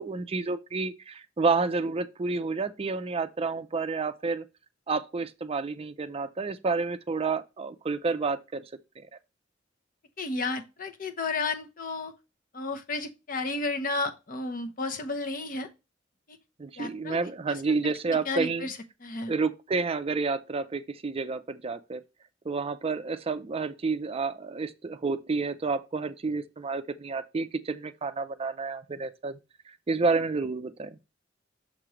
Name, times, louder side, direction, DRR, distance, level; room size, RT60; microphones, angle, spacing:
voice 1, 0.0-4.4 4.9-8.6 9.0-9.1 16.6-18.7 19.3-22.0 22.5-29.4 29.7-31.0, right 4 dB, 30° right, 0.4 m, -30 dB
voice 2, 10.2-12.1 12.5-15.7 16.3-16.4 16.8-17.2 17.5-17.6 17.8-19.3, left 3 dB, 45° left, 0.8 m, -33 dB
6.6 x 3.1 x 4.9 m
head